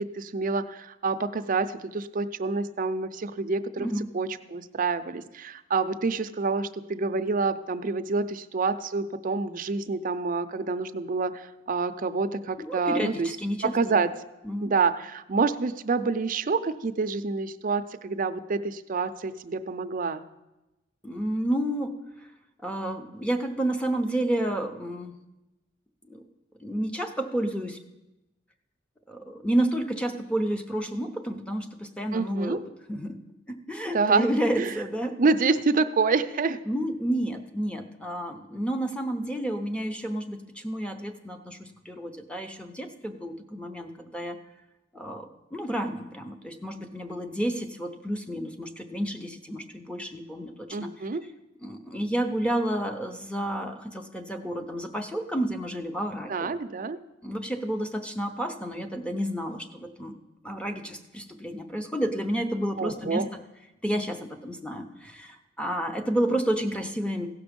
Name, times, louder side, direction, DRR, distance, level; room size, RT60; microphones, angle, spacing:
voice 1, 0.0-3.9 4.1-13.4 13.6-14.2 14.6-20.2 32.1-32.6 33.9-34.3 34.6-34.7 35.2-36.6 50.7-51.2 56.3-57.0 62.8-63.3, right 4 dB, 45° right, 10 dB, 0.5 m, -27 dB
voice 2, 3.8-4.1 12.6-14.0 14.4-14.7 21.0-22.0 22.6-25.2 26.1-26.2 26.6-27.8 29.1-32.6 32.9-33.2 33.5-35.2 36.7-44.4 44.9-50.9 51.6-56.5 57.2-60.2 60.4-63.3 63.8-67.3, right 1 dB, 5° left, 5 dB, 0.7 m, -30 dB
16.0 x 6.0 x 5.2 m, 1.0 s
head